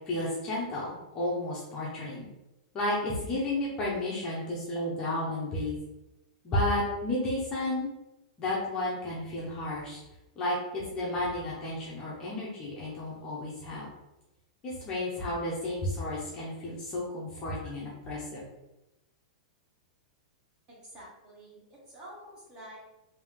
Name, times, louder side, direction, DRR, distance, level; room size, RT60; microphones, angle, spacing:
voice 1, 0.1-2.3 2.7-5.8 6.4-7.9 8.4-10.0 10.4-13.9 14.6-18.4, left 1 dB, 15° left, -5 dB, 0.6 m, -32 dB
voice 2, 20.7-22.8, right 1 dB, 20° right, -4 dB, 1.1 m, -48 dB
3.3 x 2.7 x 3.5 m, 0.95 s
supercardioid pair, 170°, 4 cm